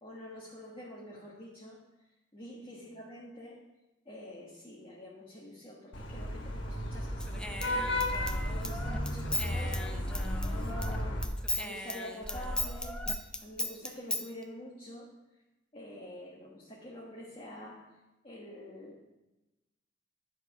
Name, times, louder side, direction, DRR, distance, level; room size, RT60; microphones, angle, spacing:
voice 1, 0.0-1.8 2.3-3.6 4.0-11.3 11.5-15.1 15.7-17.9 18.2-19.0, equal, 30° left, -4 dB, 1.3 m, -47 dB
Vehicle horn car horn honking / Traffic noise roadway noise, 5.9-11.2, left 1 dB, 65° left, 1.3 m, -34 dB
Human voice / Scissors, 7.2-11.0 11.2-14.2, left 1 dB, 5° left, 0.6 m, -36 dB
11.0 x 4.6 x 6.5 m, 1.0 s
head